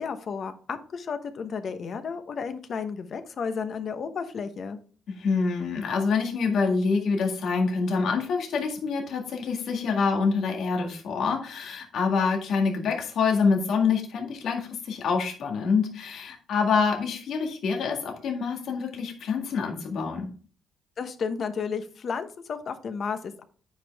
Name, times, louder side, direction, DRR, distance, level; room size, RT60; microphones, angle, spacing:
voice 1, 0.0-4.8 21.0-23.4, left 5 dB, 55° left, 9 dB, 1.0 m, -32 dB
voice 2, 5.1-20.3, left 5 dB, 70° left, 2 dB, 1.9 m, -26 dB
9.2 x 5.4 x 3.5 m, 0.43 s
cardioid pair, 90°, 0 cm